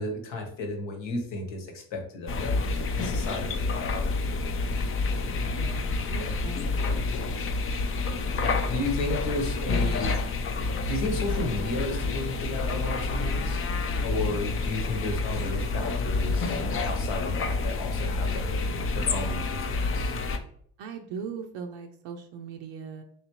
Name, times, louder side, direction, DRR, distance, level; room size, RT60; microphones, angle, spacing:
voice 1, 0.0-4.3 8.4-10.1 10.9-13.7 14.0-16.6 16.8-18.7 18.9-20.2, left 2 dB, 75° left, 2 dB, 1.1 m, -33 dB
sound 1, 2.3-20.4, left 3 dB, 30° left, 0.4 m, -28 dB
voice 2, 5.4-6.6 20.8-23.0, right 6 dB, 70° right, 3 dB, 0.6 m, -39 dB
3.2 x 2.8 x 2.9 m, 0.64 s
supercardioid pair, 70°, 46 cm